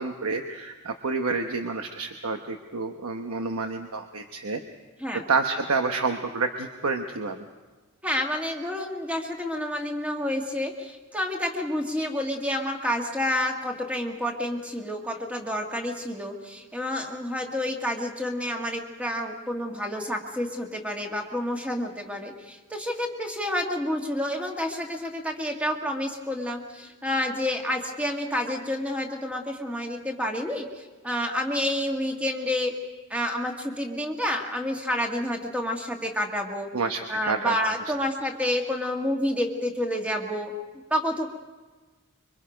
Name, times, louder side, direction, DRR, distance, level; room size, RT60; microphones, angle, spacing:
voice 1, 0.0-4.6 5.1-7.5 36.7-37.5, right 4 dB, 85° right, 5 dB, 1.1 m, -29 dB
voice 2, 8.0-32.7 33.1-36.7 37.1-40.5 40.9-41.4, left 1 dB, 5° right, 1 dB, 1.9 m, -29 dB
26.0 x 24.0 x 5.2 m, 1.3 s
head